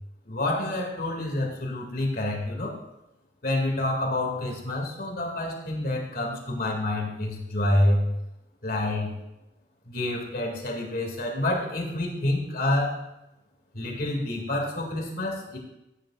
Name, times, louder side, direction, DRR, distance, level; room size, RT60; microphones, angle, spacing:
voice 1, 0.3-2.8 3.4-8.1 8.6-9.1 9.9-13.0 13.7-15.6, left 1 dB, 55° left, 0 dB, 2.3 m, -28 dB
14.0 x 10.0 x 2.4 m, 0.95 s
head